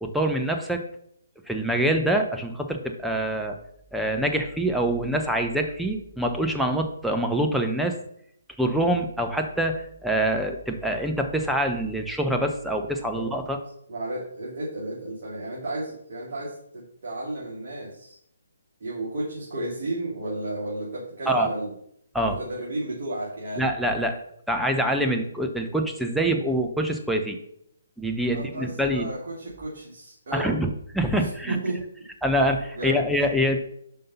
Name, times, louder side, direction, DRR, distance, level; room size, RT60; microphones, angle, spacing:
voice 1, 0.0-0.8 1.5-3.6 3.9-8.0 8.6-13.6 21.3-21.5 22.1-22.4 23.6-24.2 24.5-27.4 28.0-29.1 30.3-30.7 30.9-31.6 32.2-33.6, right 1 dB, ahead, 3 dB, 0.8 m, -25 dB
voice 2, 13.9-18.2 18.8-21.7 22.2-23.7 28.3-30.5 31.1-31.8 32.7-33.0, right 1 dB, 50° right, -6 dB, 2.5 m, -33 dB
5.5 x 5.4 x 5.5 m, 0.71 s
figure-of-eight pair, 140°, 0 cm